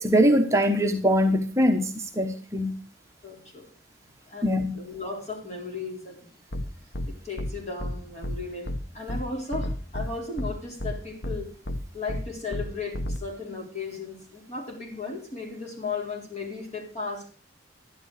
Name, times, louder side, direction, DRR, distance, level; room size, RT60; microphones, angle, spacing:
voice 1, 0.0-2.7 4.4-4.7, equal, 15° right, 3 dB, 1.0 m, -22 dB
voice 2, 3.2-3.7 4.3-6.3 7.1-11.5 11.9-17.3, left 4 dB, 40° left, 0 dB, 4.1 m, -35 dB
sound 1, 6.5-6.6 6.9-7.1 7.4-7.5 7.8-7.9 8.2-8.4 8.7-8.8 9.1-9.2 9.5-10.1 10.4-10.5 10.8-10.9 11.2-11.4 11.7-11.8 12.1-12.2 12.5-12.6 12.9-13.2, left 1 dB, 70° left, 1.2 m, -30 dB
12.0 x 11.0 x 4.8 m, 0.39 s
head